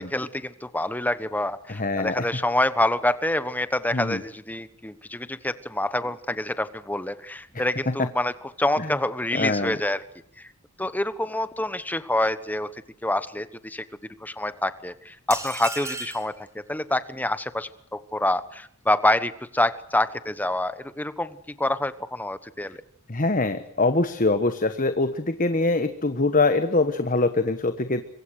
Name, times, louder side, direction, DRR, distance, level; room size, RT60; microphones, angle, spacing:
voice 1, 0.0-8.3 8.6-10.0 10.4-10.5 10.8-12.7 13.0-13.8 14.2-22.8, left 1 dB, 10° left, 14 dB, 1.2 m, -27 dB
voice 2, 1.7-2.3 3.9-4.2 8.0-8.1 8.8-8.9 9.3-9.8 23.1-28.0, left 3 dB, 35° left, 10 dB, 1.3 m, -23 dB
sound 1, 15.3-16.3, right 3 dB, 15° right, 3.9 m, -33 dB
25.5 x 23.5 x 6.5 m, 0.69 s
head